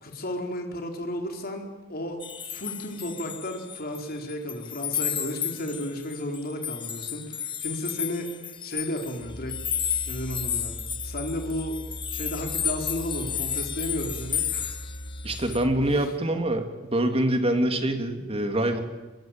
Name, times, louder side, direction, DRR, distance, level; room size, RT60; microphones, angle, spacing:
voice 1, 0.0-2.2 2.5-9.6 10.1-10.7 11.0-11.8 12.1-14.9 15.3-15.5, left 1 dB, 50° left, 3 dB, 4.3 m, -33 dB
sound 1, 2.2-4.0 4.3-15.6, left 8 dB, 25° left, 1.0 m, -32 dB
sound 2, 9.2-16.1, equal, 75° left, 3.5 m, -40 dB
voice 2, 15.2-18.8, right 1 dB, 30° right, 6 dB, 2.9 m, -25 dB
23.0 x 22.0 x 9.1 m, 1.2 s
head